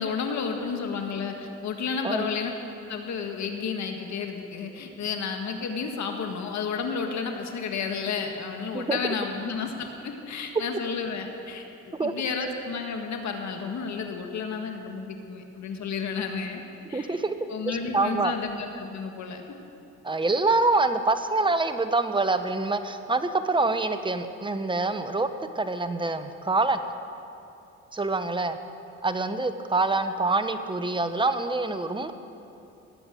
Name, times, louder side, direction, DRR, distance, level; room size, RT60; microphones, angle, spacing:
voice 1, 0.0-2.5 2.9-16.6 16.9-17.2 17.5-19.4, left 5 dB, 65° left, 4 dB, 1.7 m, -32 dB
voice 2, 16.9-17.4 17.7-18.3 20.0-25.3 25.5-26.8 27.9-28.6 29.0-32.1, right 3 dB, 15° right, 9 dB, 1.0 m, -25 dB
18.0 x 8.0 x 9.0 m, 2.8 s
cardioid pair, 90°, 30 cm